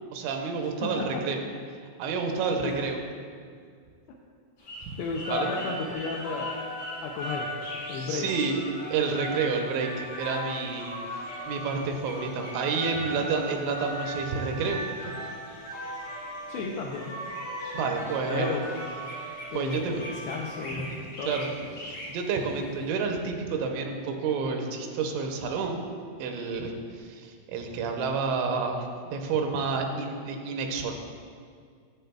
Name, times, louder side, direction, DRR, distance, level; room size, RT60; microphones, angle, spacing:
voice 1, 0.1-1.4 2.0-3.0 5.3-5.5 8.1-8.6 8.9-11.0 11.5-14.8 15.1-15.2 17.7-18.6 19.5-20.3 21.3-21.5 21.8-25.9 26.2-26.7 27.0-30.9, right 5 dB, 85° right, 3 dB, 2.9 m, -29 dB
voice 2, 0.8-1.2 2.6-2.9 5.0-6.5 7.0-7.5 7.9-8.3 16.5-17.1 18.2-18.7 19.5-20.9 21.2-21.4, left 4 dB, 90° left, -2 dB, 2.3 m, -33 dB
sound 1, 4.6-22.9, equal, 70° left, 1.3 m, -45 dB
sound 2, 5.0-20.9, equal, 45° left, 0.8 m, -38 dB
12.0 x 8.0 x 2.2 m, 2.1 s
omnidirectional pair, 5.3 m